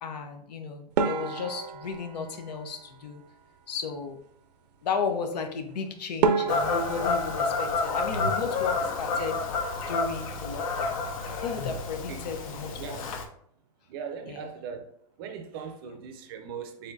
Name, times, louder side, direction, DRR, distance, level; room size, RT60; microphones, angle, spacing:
voice 1, 0.0-3.2 3.7-4.2 4.8-9.4 9.9-10.9 11.4-13.0 14.2-14.5 15.8-16.0, left 5 dB, 85° left, 0.9 m, -34 dB
sound 1, 1.0-3.4 5.7-5.8 6.2-9.0 9.2-10.0 10.3-10.5 10.8-10.9 11.6-11.9, right 6 dB, 85° right, 0.5 m, -31 dB
Fowl / Bird vocalization bird call bird song, 6.5-13.2, left 4 dB, 60° left, 0.6 m, -30 dB
voice 2, 13.9-14.9 15.2-16.9, right 7 dB, 35° right, 0.5 m, -39 dB
4.3 x 3.7 x 2.6 m
supercardioid pair, 170°, 20 cm